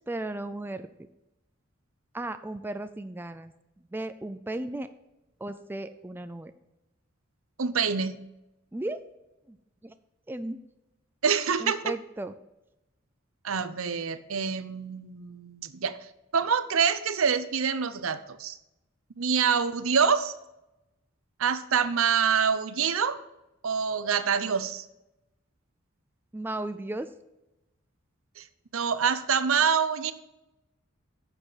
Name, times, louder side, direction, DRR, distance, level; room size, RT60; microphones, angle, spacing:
voice 1, 0.1-0.9 2.1-3.5 3.9-4.9 5.4-6.5 8.7-9.0 9.5-9.6 9.8-9.9 10.3-10.7 11.6-12.3 26.3-27.1, right 2 dB, 10° right, 10 dB, 0.4 m, -35 dB
voice 2, 7.6-8.2 11.2-11.9 13.4-16.0 16.3-18.6 19.2-20.3 21.4-23.2 23.6-24.8 28.4-28.5 28.7-30.1, right 6 dB, 75° right, 13 dB, 0.7 m, -26 dB
10.0 x 7.0 x 4.0 m, 0.94 s
head